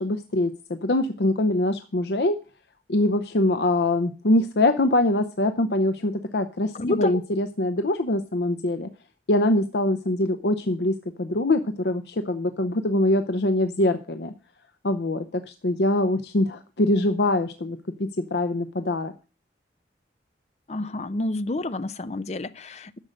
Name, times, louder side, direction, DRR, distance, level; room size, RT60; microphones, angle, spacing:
voice 1, 0.0-2.4 2.9-8.9 9.3-14.3 14.8-19.1, left 1 dB, 70° left, 0.7 m, -23 dB
voice 2, 6.7-7.1 20.7-23.0, left 2 dB, 40° left, 0.6 m, -29 dB
11.5 x 6.5 x 6.5 m
head